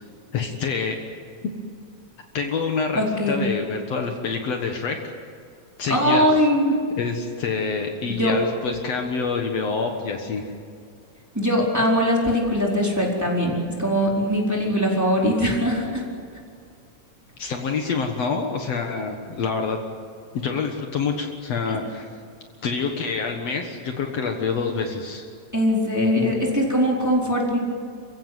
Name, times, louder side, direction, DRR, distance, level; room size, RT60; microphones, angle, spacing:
voice 1, 0.3-1.0 2.3-3.0 3.3-5.1 5.8-6.3 7.0-10.4 17.4-19.8 20.3-22.1 22.6-25.3, left 5 dB, 60° left, 3 dB, 2.5 m, -26 dB
voice 2, 2.9-3.4 5.9-6.7 8.1-8.4 11.3-16.0 25.5-27.6, equal, 5° right, -3 dB, 4.2 m, -21 dB
29.0 x 16.0 x 9.4 m, 2.3 s
omnidirectional pair, 3.3 m